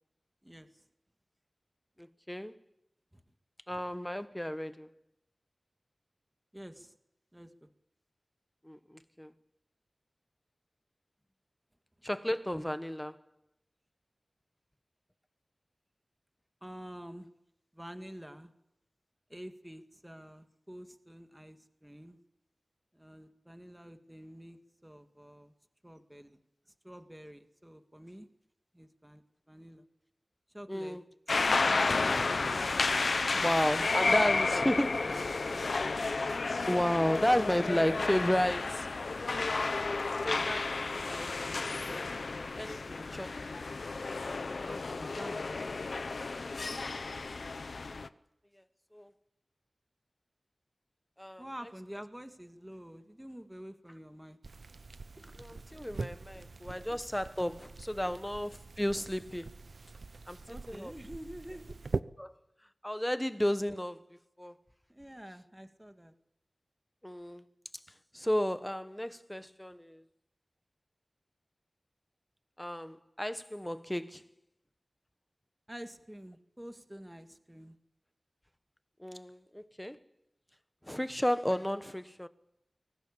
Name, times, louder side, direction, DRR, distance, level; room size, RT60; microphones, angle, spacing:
voice 1, 0.4-0.8 3.1-3.2 6.5-7.0 7.3-7.7 16.6-17.3 17.7-18.5 19.3-22.2 22.9-25.5 25.8-26.4 26.8-28.3 28.7-29.9 30.5-31.0 31.5-34.4 34.8-35.8 44.6-45.8 51.4-54.4 55.1-55.2 56.2-56.3 58.1-58.2 60.5-61.8 64.9-66.1 75.7-77.8, equal, 10° right, 1.9 m, -48 dB
voice 2, 2.0-2.5 3.7-4.9 8.6-9.3 12.0-13.2 30.7-31.0 33.3-35.4 36.7-38.9 40.2-40.8 41.1-41.3 41.6-43.6 48.5-48.6 48.9-49.1 51.2-51.4 55.4-59.6 60.3-60.4 60.7-60.9 62.2-62.4 62.8-64.1 64.4-64.5 67.0-67.4 68.1-70.0 72.6-74.2 79.0-80.0 80.8-82.3, equal, 10° left, 1.1 m, -33 dB
sound 1, 31.3-48.1, left 3 dB, 80° left, 0.8 m, -32 dB
sound 2, 54.4-62.0, right 3 dB, 80° right, 0.8 m, -42 dB
23.0 x 18.5 x 8.4 m
wide cardioid pair, 75°, 0 cm